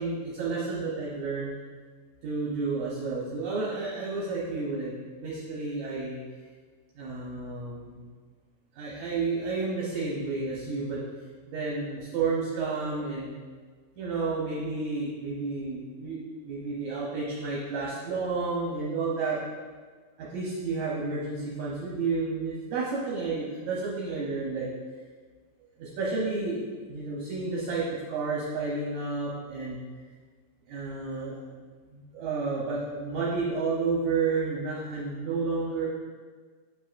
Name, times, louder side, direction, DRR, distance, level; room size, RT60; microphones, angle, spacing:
voice 1, 0.0-1.6 2.2-4.9 5.2-6.2 7.0-8.0 8.7-11.0 11.5-13.3 14.0-19.4 20.2-24.7 25.8-29.8 30.7-31.4 31.9-35.9, right 4 dB, 70° right, -6 dB, 2.1 m, -31 dB
8.3 x 5.4 x 2.5 m, 1.5 s
omnidirectional pair, 3.9 m